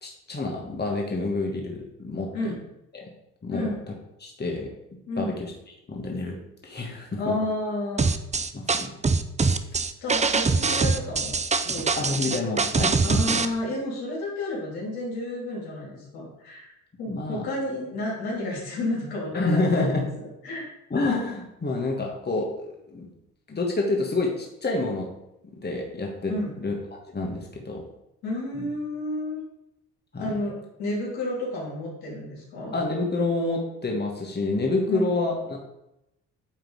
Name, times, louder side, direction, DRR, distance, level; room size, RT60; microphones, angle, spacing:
voice 1, 0.0-2.5 2.9-3.1 3.4-3.7 4.2-4.7 5.2-5.5 5.9-6.4 6.6-7.4 8.5-8.9 12.0-13.4 17.1-17.5 19.3-20.0 20.9-23.1 23.5-25.1 25.5-26.7 27.1-27.8 28.5-28.7 30.1-30.3 32.7-35.6, left 2 dB, 25° left, 0 dB, 1.8 m, -28 dB
voice 2, 3.5-3.8 5.1-5.4 7.2-8.1 10.0-11.3 11.6-12.4 13.0-16.7 17.0-19.8 20.4-20.6 26.3-26.5 28.2-29.4 30.2-32.7 34.9-35.0, left 1 dB, 80° left, -4 dB, 3.1 m, -31 dB
sound 1, 8.0-13.5, right 4 dB, 20° right, 0.6 m, -23 dB
9.1 x 3.7 x 4.8 m, 0.85 s
supercardioid pair, 60°, 36 cm